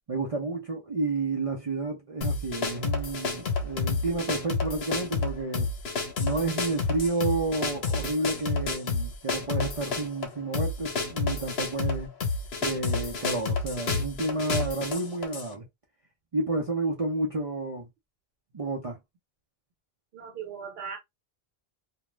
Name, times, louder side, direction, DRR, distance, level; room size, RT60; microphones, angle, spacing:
voice 1, 0.1-5.7 6.2-12.1 12.6-15.6 16.3-17.9 18.5-19.0, right 3 dB, 40° right, 0.6 m, -30 dB
sound 1, 2.2-15.5, left 4 dB, 90° left, 1.0 m, -30 dB
voice 2, 20.1-21.0, right 7 dB, 75° right, 1.2 m, -38 dB
2.3 x 2.2 x 3.1 m
omnidirectional pair, 1.0 m